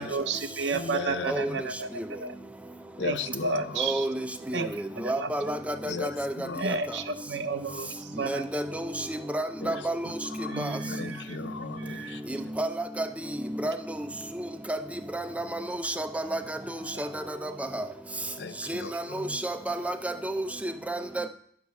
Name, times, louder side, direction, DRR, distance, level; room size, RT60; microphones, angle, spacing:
voice 1, 0.0-1.9 2.2-2.3 3.0-4.1 4.5-4.7 5.0-5.3 6.6-8.4 10.5-11.4 11.8-12.2 16.9-17.1, right 4 dB, 75° right, 0.8 m, -32 dB
voice 2, 0.7-1.6 3.0-3.8 5.9-6.1 6.4-6.6 9.6-9.8 10.4-12.2 18.4-19.4, left 4 dB, 75° left, 0.6 m, -37 dB
voice 3, 3.8-4.1 4.5-4.7 5.0-6.3 8.3-10.1 10.6-10.7 12.6-12.7 13.0-13.1 13.6-13.7 14.7-14.8 15.1-16.6 17.0-17.8 18.7-18.8 19.1-21.3, right 1 dB, 10° right, 0.6 m, -31 dB
10.5 x 4.8 x 7.1 m
head